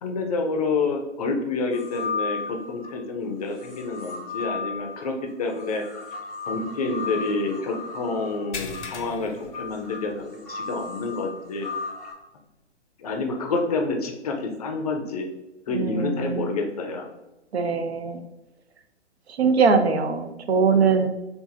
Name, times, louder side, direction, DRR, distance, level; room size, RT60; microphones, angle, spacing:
voice 1, 0.0-5.8 6.5-11.7 13.0-15.3 15.7-17.1, left 3 dB, 35° left, 3 dB, 0.5 m, -28 dB
sound 1, 1.7-3.0 3.5-12.1, left 4 dB, ahead, 0.8 m, -35 dB
sound 2, 8.5-10.4 10.8-11.0 11.4-11.5 13.2-13.3, left 4 dB, 80° left, 0.6 m, -39 dB
voice 2, 15.7-16.5 17.5-18.2 19.3-21.1, right 5 dB, 65° right, 7 dB, 0.6 m, -22 dB
4.6 x 2.5 x 2.5 m, 1.0 s
figure-of-eight pair, 120°, 35 cm